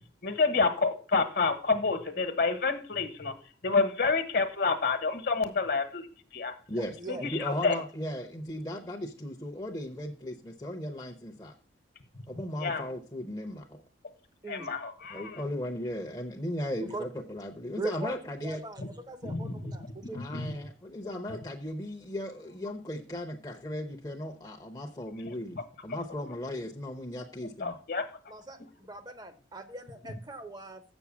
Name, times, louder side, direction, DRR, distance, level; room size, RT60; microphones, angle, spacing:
voice 1, 0.2-3.3 3.6-6.1 6.3-6.5 7.1-7.8 12.6-12.8 14.5-15.4 18.8-18.9 19.2-19.7 20.1-20.5 27.6-28.0, left 4 dB, 50° left, 10 dB, 1.2 m, -28 dB
voice 2, 6.7-11.5 12.3-13.8 15.1-18.6 20.1-27.8, left 1 dB, 20° left, 1 dB, 0.7 m, -37 dB
voice 3, 17.8-18.2 18.4-20.4 28.3-30.8, right 2 dB, 20° right, 9 dB, 0.7 m, -40 dB
7.8 x 6.2 x 7.0 m, 0.40 s
head